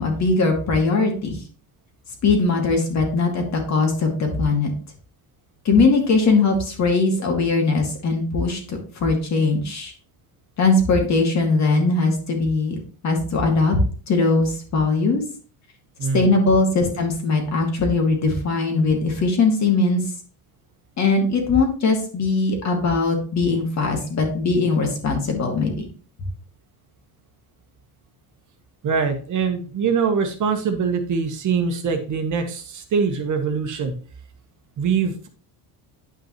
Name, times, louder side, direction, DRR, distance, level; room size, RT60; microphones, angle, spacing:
voice 1, 0.0-1.4 2.2-3.4 3.7-4.7 5.7-9.9 10.6-12.8 13.0-13.8 14.1-15.2 16.1-20.0 21.0-25.9, left 3 dB, 40° left, 3 dB, 2.4 m, -20 dB
voice 2, 16.0-16.3 28.8-33.9 34.8-35.3, right 5 dB, 40° right, 6 dB, 1.3 m, -23 dB
10.0 x 5.4 x 3.1 m, 0.40 s
cardioid pair, 130°, 44 cm